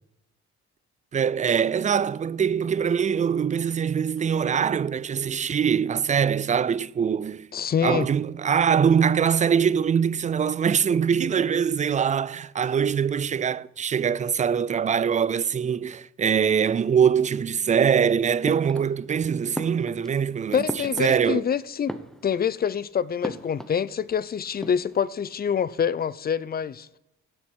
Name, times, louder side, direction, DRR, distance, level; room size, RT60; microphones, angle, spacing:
voice 1, 1.1-7.5 7.8-20.6 21.0-21.4, right 7 dB, 25° right, 0.3 m, -23 dB
voice 2, 7.5-8.1 20.5-21.9 22.2-26.9, left 7 dB, 30° left, 0.5 m, -26 dB
sound 1, 18.4-19.2 19.5-21.5 21.8-22.6 23.2-24.2 24.5-25.0, equal, ahead, 0.9 m, -37 dB
15.5 x 7.4 x 4.5 m
cardioid pair, 90°, 30 cm